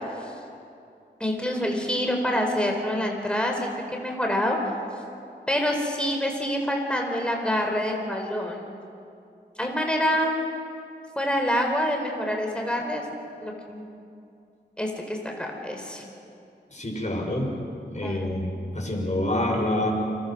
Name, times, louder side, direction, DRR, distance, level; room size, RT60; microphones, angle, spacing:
voice 1, 1.2-4.7 5.5-8.6 9.6-10.4 11.2-13.0 13.4-13.9 14.8-16.0 18.0-18.3, equal, 5° left, 1 dB, 4.2 m, -26 dB
voice 2, 16.7-17.6 17.8-19.9, left 1 dB, 40° left, 0 dB, 6.2 m, -27 dB
28.5 x 22.0 x 6.2 m, 2.6 s
cardioid pair, 40°, 19 cm